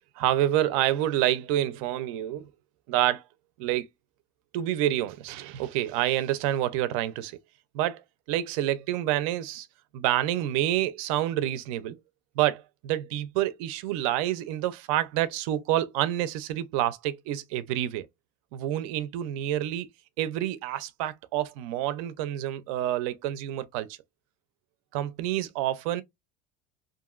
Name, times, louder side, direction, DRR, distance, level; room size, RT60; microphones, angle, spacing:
voice 1, 0.2-2.5 2.9-3.2 3.6-3.9 4.5-7.4 7.7-8.0 8.3-9.7 9.9-12.0 12.4-18.1 18.5-19.9 20.2-24.0 24.9-26.0, right 13 dB, 70° right, 0.5 m, -28 dB
2.8 x 2.6 x 2.4 m
cardioid pair, 165°, 18 cm